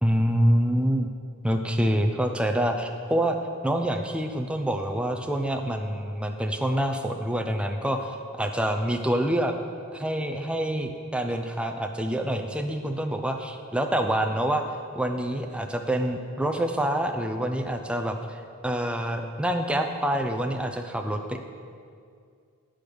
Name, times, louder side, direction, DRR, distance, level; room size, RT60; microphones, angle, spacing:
voice 1, 0.0-1.1 1.4-3.4 3.6-9.5 9.9-14.6 14.9-21.4, right 1 dB, 5° right, 3 dB, 0.4 m, -26 dB
8.7 x 5.0 x 6.1 m, 2.2 s
head